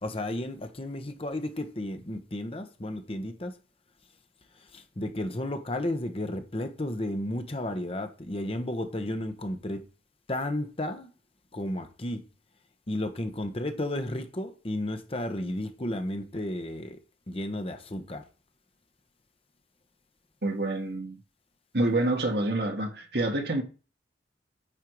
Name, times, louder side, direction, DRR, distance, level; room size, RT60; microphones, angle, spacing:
voice 1, 0.0-3.5 4.7-9.8 10.3-11.1 11.5-12.2 12.9-17.0 17.3-18.2, left 1 dB, 35° left, 1.1 m, -33 dB
voice 2, 20.4-21.1 21.7-23.6, right 2 dB, 65° right, 1.7 m, -27 dB
8.9 x 4.6 x 4.7 m
head